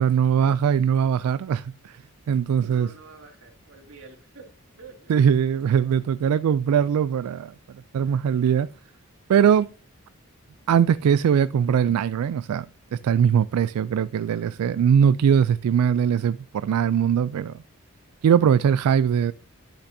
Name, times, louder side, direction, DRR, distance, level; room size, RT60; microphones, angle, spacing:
voice 1, 0.0-2.0 2.3-2.9 5.1-7.5 7.9-8.7 9.3-9.7 10.7-12.7 12.9-17.6 18.2-19.3, right 8 dB, 85° right, 0.3 m, -21 dB
voice 2, 2.6-4.5 4.8-5.1, right 4 dB, 65° right, 2.8 m, -47 dB
11.5 x 5.7 x 2.7 m
head